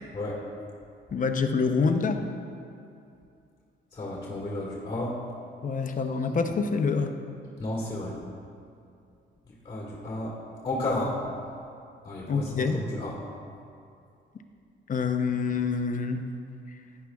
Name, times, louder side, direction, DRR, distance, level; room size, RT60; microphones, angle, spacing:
voice 1, 1.1-2.2 5.6-7.1 12.3-12.8 14.9-16.2, left 5 dB, 40° left, 6 dB, 0.7 m, -26 dB
voice 2, 3.9-5.2 7.6-8.2 9.7-10.4 10.6-11.2 12.1-13.2, left 1 dB, 25° left, -3 dB, 1.8 m, -32 dB
11.5 x 9.6 x 2.4 m, 2.5 s
cardioid pair, 90°, 20 cm